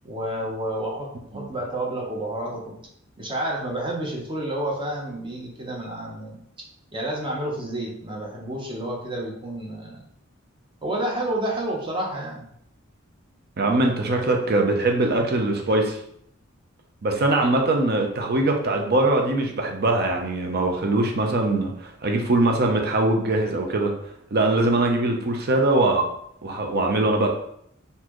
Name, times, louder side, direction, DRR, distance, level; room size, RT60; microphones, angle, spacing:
voice 1, 0.0-2.8 3.2-6.4 6.9-10.0 10.8-12.5, right 1 dB, 25° right, -2 dB, 0.9 m, -30 dB
voice 2, 13.6-16.0 17.0-23.9 24.3-26.1 26.4-27.3, right 2 dB, 50° right, 3 dB, 0.6 m, -22 dB
4.1 x 2.7 x 3.0 m, 0.71 s
head